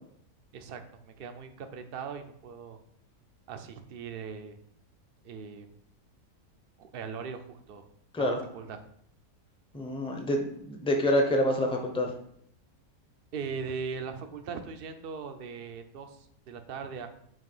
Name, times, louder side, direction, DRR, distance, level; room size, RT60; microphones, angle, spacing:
voice 1, 0.5-2.8 3.5-4.6 5.2-5.8 6.8-7.8 8.2-8.8 13.3-17.1, right 5 dB, 55° right, 7 dB, 0.6 m, -40 dB
voice 2, 9.7-12.1, equal, 5° left, 3 dB, 0.6 m, -27 dB
7.3 x 3.1 x 5.4 m, 0.68 s
omnidirectional pair, 1.6 m